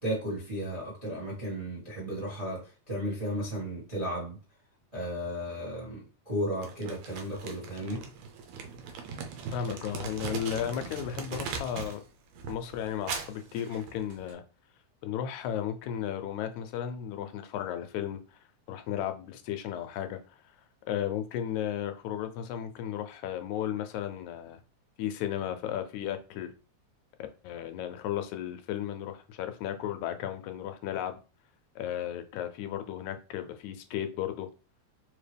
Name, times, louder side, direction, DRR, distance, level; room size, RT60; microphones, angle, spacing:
voice 1, 0.0-4.4 4.9-8.0, equal, 25° right, 0.6 m, -34 dB
Crumpling crinkling, 6.6-12.0 12.3-14.3, right 5 dB, 80° right, 1.9 m, -40 dB
voice 2, 9.5-12.0 12.5-14.4 15.0-18.4 18.7-20.6 20.9-24.6 25.0-26.5 27.4-31.2 31.8-34.5, left 10 dB, 80° left, 1.9 m, -34 dB
4.6 x 2.9 x 3.3 m
omnidirectional pair, 3.4 m